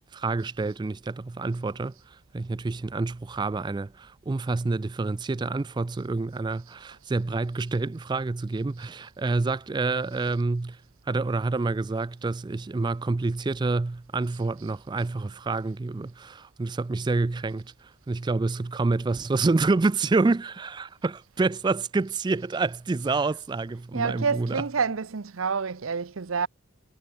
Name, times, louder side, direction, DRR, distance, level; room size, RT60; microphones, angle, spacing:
voice 1, 0.1-10.8 11.1-24.6, right 3 dB, 20° right, 0.3 m, -28 dB
voice 2, 23.9-26.5, right 5 dB, 85° right, 0.8 m, -28 dB
head